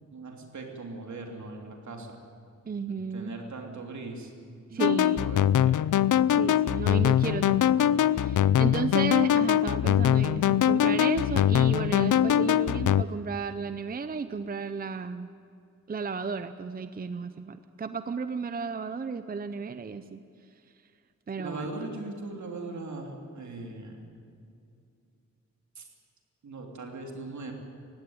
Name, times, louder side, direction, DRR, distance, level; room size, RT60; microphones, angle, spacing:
voice 1, 0.1-2.2 2.9-4.3 4.7-4.8 5.2-5.8 21.4-24.0 25.8-25.9 26.4-27.5, right 3 dB, 70° right, 2 dB, 3.2 m, -39 dB
voice 2, 2.7-3.3 4.7-5.3 6.4-15.3 15.9-20.2 21.3-21.7, right 5 dB, 30° right, 11 dB, 0.5 m, -33 dB
sound 1, 4.8-13.0, left 10 dB, 85° left, 0.5 m, -23 dB
19.0 x 16.0 x 9.4 m, 2.5 s
wide cardioid pair, 165°, 30 cm